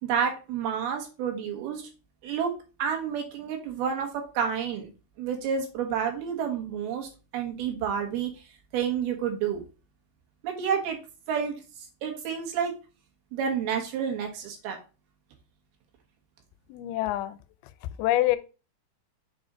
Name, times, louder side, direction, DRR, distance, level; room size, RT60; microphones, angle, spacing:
voice 1, 0.0-1.9 2.2-2.5 2.8-4.1 4.3-4.9 5.2-8.3 8.7-9.6 10.4-11.0 11.3-11.6 12.0-12.7 13.3-14.8, right 7 dB, 80° right, 2 dB, 3.2 m, -29 dB
voice 2, 16.7-17.4 18.0-18.4, left 15 dB, 90° left, 13 dB, 2.5 m, -25 dB
6.7 x 4.1 x 3.8 m, 0.33 s
omnidirectional pair, 4.4 m